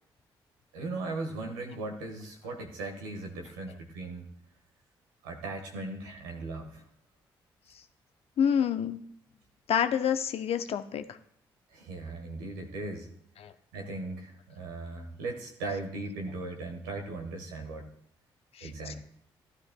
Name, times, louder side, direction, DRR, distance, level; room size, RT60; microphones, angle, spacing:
voice 1, 0.7-4.3 5.2-6.8 11.7-13.1 13.7-17.9 18.6-19.0, right 2 dB, 85° right, 3 dB, 1.4 m, -38 dB
voice 2, 8.4-9.0 9.7-11.2 13.4-13.5 18.5-19.0, left 8 dB, 60° left, 9 dB, 0.7 m, -28 dB
15.0 x 11.5 x 2.2 m, 0.64 s
hypercardioid pair, 45°, 11 cm